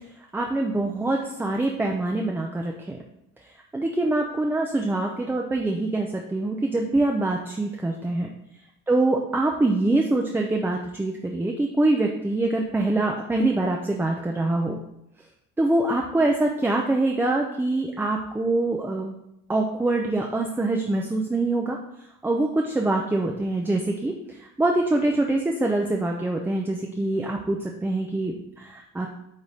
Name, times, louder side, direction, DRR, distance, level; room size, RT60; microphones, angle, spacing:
voice 1, 0.3-3.0 3.7-8.3 8.9-14.7 15.6-19.1 19.5-21.8 22.2-24.1 24.4-29.1, right 2 dB, 5° right, 1 dB, 0.4 m, -24 dB
8.9 x 3.5 x 4.0 m, 0.84 s
cardioid pair, 155°, 34 cm